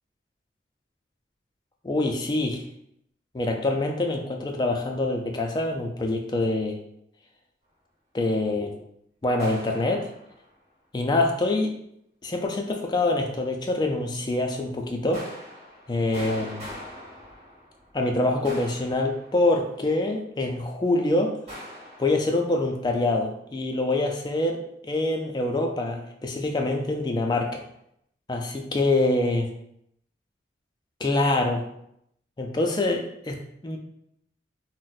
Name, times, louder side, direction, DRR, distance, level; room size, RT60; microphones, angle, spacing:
voice 1, 1.8-2.6 3.3-6.8 8.1-8.8 9.2-10.1 10.9-11.7 12.2-15.3 15.9-16.7 17.9-21.4 22.0-27.6 28.3-29.5 31.0-31.6 32.4-33.4 33.6-33.8, left 2 dB, 25° left, 3 dB, 0.3 m, -25 dB
sound 1, 9.4-10.5 15.1-18.0 18.4-19.8 21.5-22.4, equal, 35° right, 1.5 m, -42 dB
2.5 x 2.0 x 3.9 m, 0.76 s
head